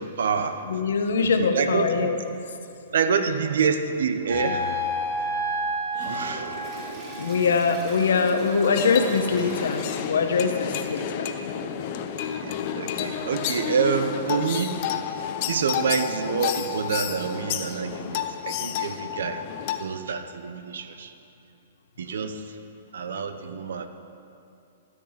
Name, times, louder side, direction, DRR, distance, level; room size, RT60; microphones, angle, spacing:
voice 1, 0.0-0.6 1.2-2.1 2.9-5.4 6.1-6.6 12.4-14.9 15.5-19.4 19.8-21.1 22.0-22.6 22.9-23.9, right 5 dB, 80° right, 8 dB, 0.9 m, -27 dB
voice 2, 0.7-2.2 6.0-6.2 7.2-11.3, left 5 dB, 85° left, 6 dB, 1.2 m, -23 dB
sound 1, 4.3-7.5, equal, 55° right, 3.2 m, -29 dB
Toilet flush, 5.9-10.3, right 1 dB, 30° right, 2.8 m, -39 dB
sound 2, 8.7-19.8, left 9 dB, 45° left, 0.8 m, -31 dB
13.5 x 6.1 x 8.7 m, 2.6 s
hypercardioid pair, 150°, 0 cm